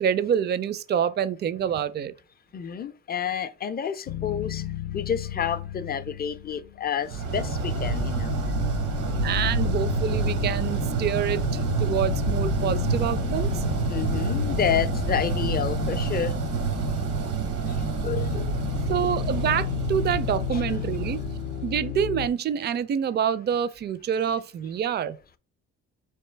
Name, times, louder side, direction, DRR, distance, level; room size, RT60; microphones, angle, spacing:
voice 1, 0.0-2.1 9.2-13.6 18.9-21.2 21.6-25.2, right 8 dB, 35° right, 0.4 m, -27 dB
voice 2, 2.5-4.6 4.9-8.3 13.9-16.3 17.6-18.5 20.5-20.6, left 8 dB, 30° left, 0.4 m, -29 dB
sound 1, 4.1-6.9 7.2-22.3, left 12 dB, 85° left, 0.5 m, -32 dB
sound 2, 7.1-22.1, right 5 dB, 80° right, 0.9 m, -28 dB
3.9 x 3.2 x 3.2 m
cardioid pair, 90°, 30 cm